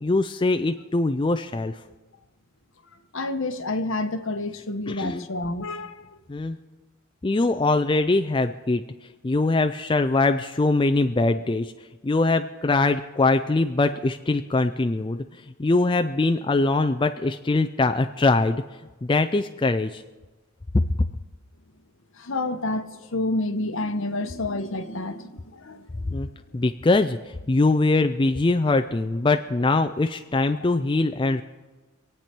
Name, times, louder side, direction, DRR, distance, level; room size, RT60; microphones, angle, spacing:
voice 1, 0.0-1.8 4.9-5.3 6.3-6.6 7.2-8.8 9.2-11.7 12.0-18.6 19.0-20.0 26.1-26.3 26.5-31.4, left 3 dB, 20° left, 0.4 m, -22 dB
voice 2, 2.9-6.2 22.1-26.2 30.5-30.8, left 2 dB, 60° left, 1.1 m, -29 dB
26.0 x 8.7 x 4.5 m
head